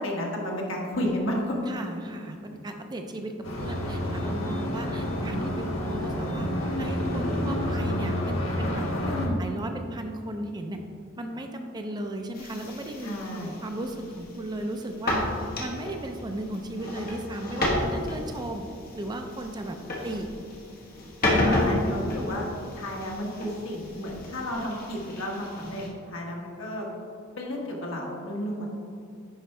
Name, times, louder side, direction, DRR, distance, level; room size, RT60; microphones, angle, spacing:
voice 1, 0.0-1.6 9.0-9.4 13.0-13.5 21.4-22.5 22.7-26.9 27.4-28.7, left 1 dB, 70° left, -2 dB, 1.4 m, -32 dB
voice 2, 1.7-6.5 6.8-8.9 9.4-10.8 11.2-13.1 13.4-15.2 15.6-18.6 18.9-20.3 21.2-21.5 21.8-22.0, right 1 dB, 20° right, 4 dB, 0.4 m, -36 dB
sound 1, 3.4-9.3, left 1 dB, 85° left, 1.2 m, -29 dB
sound 2, 12.3-25.9, left 1 dB, 45° left, 1.3 m, -32 dB
10.0 x 4.6 x 3.3 m, 2.5 s
head